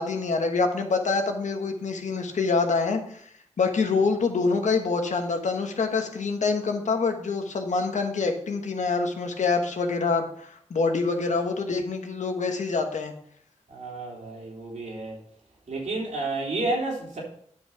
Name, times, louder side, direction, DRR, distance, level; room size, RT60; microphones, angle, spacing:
voice 1, 0.0-3.2 3.6-13.1, left 4 dB, 85° left, 1.2 m, -26 dB
voice 2, 13.7-15.2 15.7-17.2, right 2 dB, 85° right, 3.3 m, -31 dB
9.9 x 5.7 x 4.7 m
cardioid pair, 50°, 12 cm